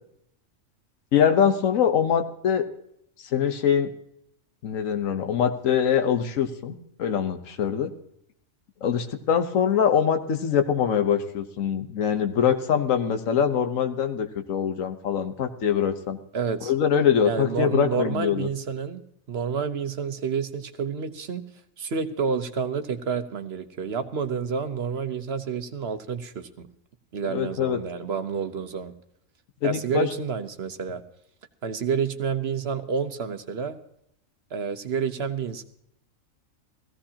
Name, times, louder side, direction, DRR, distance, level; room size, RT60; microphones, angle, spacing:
voice 1, 1.1-2.6 3.3-3.9 4.6-7.9 8.8-16.2 16.6-18.5 27.2-27.8 29.6-30.1, left 8 dB, 75° left, 7 dB, 1.4 m, -23 dB
voice 2, 16.3-16.7 17.2-19.0 19.3-21.4 21.8-26.7 27.1-28.9 29.6-31.0 31.6-33.8 34.5-35.6, right 6 dB, 55° right, 9 dB, 1.0 m, -29 dB
18.0 x 15.5 x 2.8 m, 0.74 s
omnidirectional pair, 1.4 m